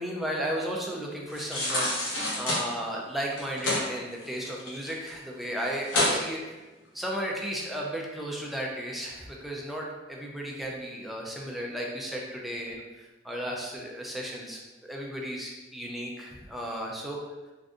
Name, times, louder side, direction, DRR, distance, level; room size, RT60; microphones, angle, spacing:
voice 1, 0.0-1.9 2.4-6.4 6.9-17.2, equal, ahead, -2 dB, 0.4 m, -34 dB
sound 1, 1.3-2.6 3.3-3.8 4.2-5.1 5.4-5.5 5.8-6.2 6.7-6.8, left 1 dB, 90° left, 0.9 m, -28 dB
3.5 x 2.5 x 2.5 m, 1.1 s
head